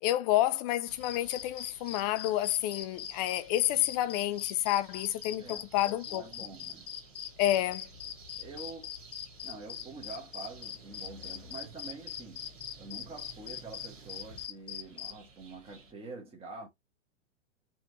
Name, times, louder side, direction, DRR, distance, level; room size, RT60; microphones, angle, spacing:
voice 1, 0.0-5.5 5.7-6.3 7.4-7.9, left 14 dB, 35° left, 0.5 m, -29 dB
sound 1, 0.8-15.9, right 2 dB, 80° right, 1.4 m, -54 dB
sound 2, 1.0-15.1, left 10 dB, 65° left, 0.8 m, -41 dB
voice 2, 5.4-6.9 8.4-8.9 9.4-12.5 12.8-16.7, right 3 dB, 15° right, 1.1 m, -46 dB
4.3 x 2.6 x 2.7 m
hypercardioid pair, 115°, 37 cm